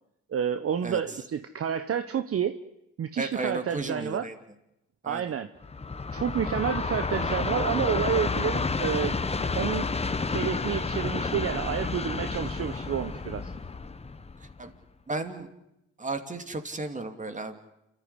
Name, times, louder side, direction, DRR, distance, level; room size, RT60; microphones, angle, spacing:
voice 1, 0.3-2.5 3.0-4.3 5.0-5.5 6.1-9.1 9.5-9.9 10.3-13.5, right 8 dB, 50° right, 11 dB, 1.0 m, -29 dB
voice 2, 3.2-4.4 5.0-5.2 14.6-14.7 15.1-15.5 16.0-17.6, right 3 dB, 25° right, 8 dB, 2.7 m, -34 dB
Train, 5.6-14.8, left 4 dB, 20° left, 1.1 m, -30 dB
29.0 x 14.0 x 9.7 m, 0.85 s
cardioid pair, 90°, 30 cm